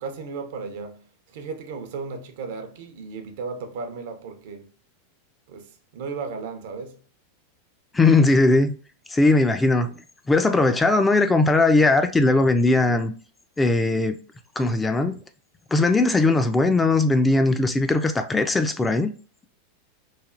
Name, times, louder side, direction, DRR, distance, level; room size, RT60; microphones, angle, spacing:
voice 1, 0.0-4.7 5.5-7.0, right 4 dB, 70° right, 0.6 m, -35 dB
voice 2, 7.9-8.8 9.1-9.9 10.3-13.1 13.6-14.2 14.6-15.2 15.7-19.1, left 2 dB, 15° left, 0.4 m, -19 dB
3.2 x 2.3 x 2.4 m
hypercardioid pair, 105°, 0 cm